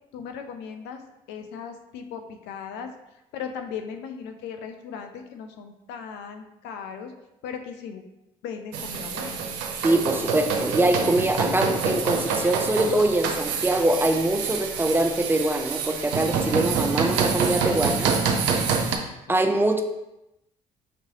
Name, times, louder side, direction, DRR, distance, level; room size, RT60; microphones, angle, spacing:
voice 1, 0.1-1.0 1.3-2.9 3.3-7.1 7.4-8.0 8.4-9.4 19.1-19.5, left 7 dB, 75° left, 6 dB, 0.6 m, -37 dB
sound 1, 8.7-19.0, right 5 dB, 75° right, 0.6 m, -26 dB
voice 2, 9.8-18.1 19.3-19.8, right 1 dB, 10° right, 5 dB, 0.7 m, -23 dB
5.8 x 3.0 x 2.9 m, 0.91 s
hypercardioid pair, 50°, 18 cm